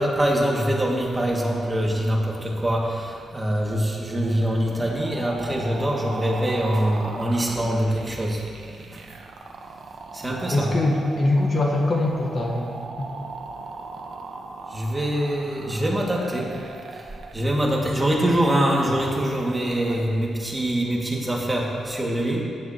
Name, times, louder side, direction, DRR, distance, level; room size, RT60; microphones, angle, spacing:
voice 1, 0.0-8.4 10.2-10.7 14.7-16.5 17.3-22.4, right 1 dB, 15° right, -3 dB, 2.3 m, -24 dB
sound 1, 4.2-20.1, right 3 dB, 70° right, 1.1 m, -39 dB
voice 2, 10.5-12.7 13.0-13.1, left 2 dB, 45° left, 0 dB, 1.5 m, -22 dB
15.5 x 10.5 x 3.1 m, 2.4 s
cardioid pair, 75°, 0 cm